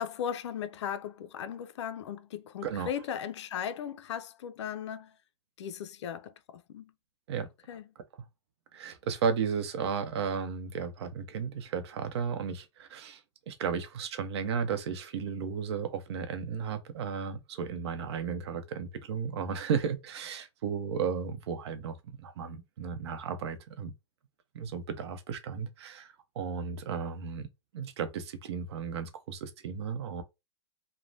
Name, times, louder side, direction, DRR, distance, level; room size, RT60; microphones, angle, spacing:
voice 1, 0.0-5.1 5.6-6.9 7.7-7.8, left 9 dB, 75° left, 0.4 m, -37 dB
voice 2, 8.7-13.2 13.5-23.9 24.5-27.5 27.7-30.2, right 6 dB, 65° right, 0.7 m, -34 dB
3.1 x 2.1 x 2.6 m
hypercardioid pair, 140°, 15 cm